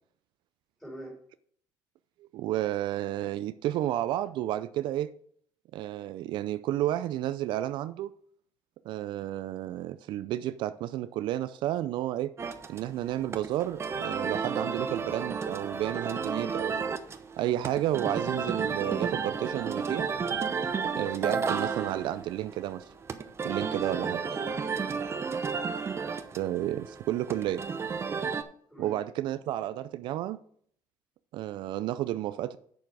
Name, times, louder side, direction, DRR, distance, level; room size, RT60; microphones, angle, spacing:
voice 1, 0.8-1.1 23.8-25.4 28.7-29.0, right 1 dB, ahead, 4.4 m, -44 dB
voice 2, 2.3-5.1 5.7-8.1 8.9-12.3 12.7-16.9 17.4-20.1 21.0-22.9 23.4-24.2 26.4-27.7 28.8-30.4 31.3-32.6, right 13 dB, 70° right, 0.4 m, -31 dB
sound 1, 12.4-28.4, right 5 dB, 30° right, 0.8 m, -33 dB
8.2 x 6.8 x 4.9 m
cardioid pair, 105°, 8 cm